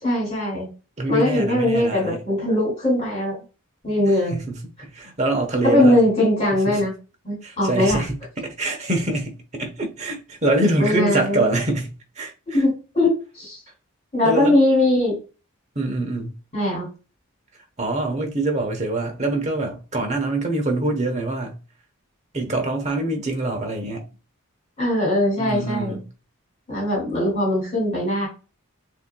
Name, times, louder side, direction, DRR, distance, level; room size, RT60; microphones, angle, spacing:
voice 1, 0.0-0.7 1.1-3.4 3.8-4.4 5.6-6.9 7.2-8.0 10.8-11.4 12.5-13.6 14.1-15.2 16.5-16.9 24.8-26.0 26.7-28.3, left 1 dB, 30° left, 2.5 m, -20 dB
voice 2, 1.0-2.2 4.3-6.0 6.7-6.9 7.4-12.6 14.2-14.6 15.7-16.4 17.8-21.6 22.3-24.1 25.4-26.1, right 2 dB, 30° right, 1.0 m, -25 dB
6.8 x 2.8 x 2.3 m
head